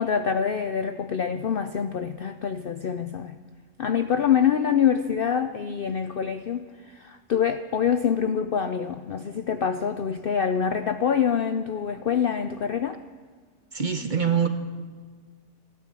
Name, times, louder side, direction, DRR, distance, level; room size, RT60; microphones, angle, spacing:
voice 1, 0.0-3.4 3.8-13.0, left 7 dB, 85° left, 9 dB, 0.4 m, -25 dB
voice 2, 13.7-14.5, right 7 dB, 40° right, 7 dB, 0.8 m, -24 dB
14.5 x 12.0 x 7.6 m, 1.5 s
omnidirectional pair, 1.6 m